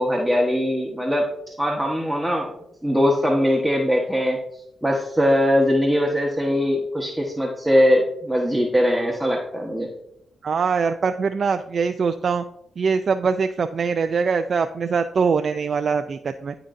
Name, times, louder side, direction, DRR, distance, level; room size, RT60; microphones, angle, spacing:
voice 1, 0.0-2.5 2.8-4.4 4.8-9.9, equal, 5° right, -2 dB, 1.1 m, -21 dB
voice 2, 10.4-12.4 12.8-16.6, right 5 dB, 55° right, 7 dB, 0.3 m, -23 dB
11.0 x 3.8 x 2.5 m, 0.79 s
supercardioid pair, 60°, 0 cm